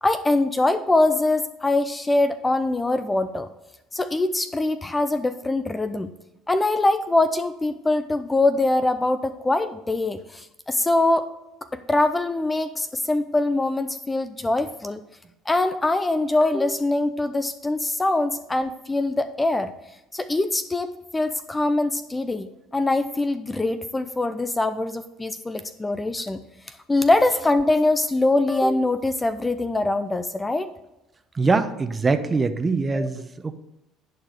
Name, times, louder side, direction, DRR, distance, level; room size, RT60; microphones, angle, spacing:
voice 1, 0.0-3.5 3.9-6.1 6.5-11.2 11.7-15.0 15.5-19.7 20.1-26.4 26.7-30.7 32.9-33.1, left 2 dB, 15° left, 10 dB, 0.5 m, -23 dB
voice 2, 31.3-33.6, right 4 dB, 25° right, 10 dB, 0.8 m, -23 dB
10.5 x 4.7 x 5.2 m, 0.92 s
supercardioid pair, 95°, 0 cm